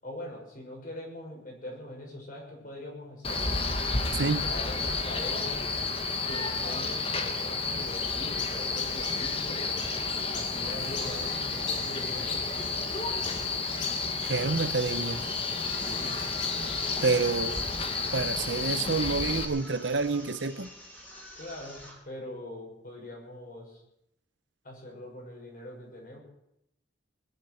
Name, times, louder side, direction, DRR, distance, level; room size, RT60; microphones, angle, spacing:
voice 1, 0.0-3.4 4.4-5.7 6.3-9.7 10.3-12.4 15.9-16.1 21.3-23.8 24.6-26.2, left 1 dB, 50° left, 6.5 m, -42 dB
Male speech man speaking, 3.2-19.4, left 3 dB, 30° left, 1.6 m, -31 dB
voice 2, 4.1-4.5 14.2-15.2 17.0-17.6 18.1-20.7, right 4 dB, 70° right, 0.8 m, -28 dB
sound 1, 7.8-17.6, left 6 dB, 80° left, 2.3 m, -42 dB
sound 2, 14.3-22.1, left 1 dB, 10° left, 3.5 m, -48 dB
20.5 x 7.5 x 9.4 m
head